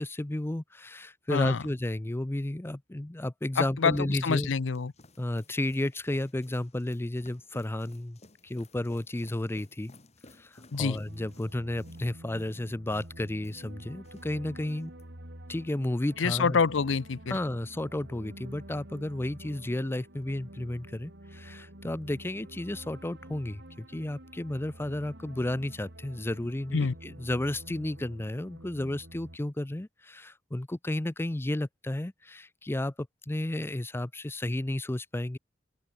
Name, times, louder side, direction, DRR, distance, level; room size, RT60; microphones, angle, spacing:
voice 1, 0.0-4.5 5.2-9.9 10.4-14.9 15.5-16.6 17.3-35.4, left 1 dB, 10° left, 0.5 m, -32 dB
voice 2, 1.3-1.6 3.6-4.9 10.7-11.0 16.2-17.4 26.7-26.9, left 5 dB, 75° left, 0.6 m, -27 dB
sound 1, 4.5-14.3 14.6-15.0, left 2 dB, 35° left, 2.8 m, -57 dB
sound 2, 11.1-29.4, right 1 dB, 65° right, 4.6 m, -48 dB
open air
head